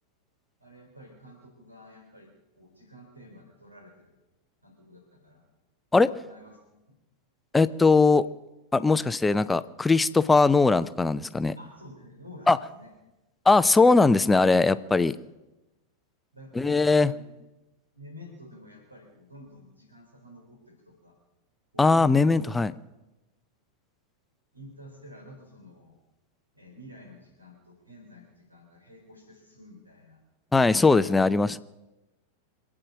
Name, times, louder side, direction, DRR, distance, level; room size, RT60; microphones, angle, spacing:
voice 1, 0.6-2.3 2.6-4.2 4.6-5.5 6.0-6.6 11.6-12.9 16.3-17.2 17.9-21.2 21.7-22.3 24.5-26.0 26.5-30.2 30.8-31.2, equal, 85° right, 2 dB, 3.5 m, -49 dB
voice 2, 7.5-8.2 8.7-11.5 12.5-12.6 13.5-15.1 16.6-17.1 21.8-22.7 30.5-31.6, left 3 dB, 10° left, 15 dB, 0.6 m, -20 dB
26.0 x 8.9 x 6.3 m, 1.0 s
figure-of-eight pair, 90°, 0 cm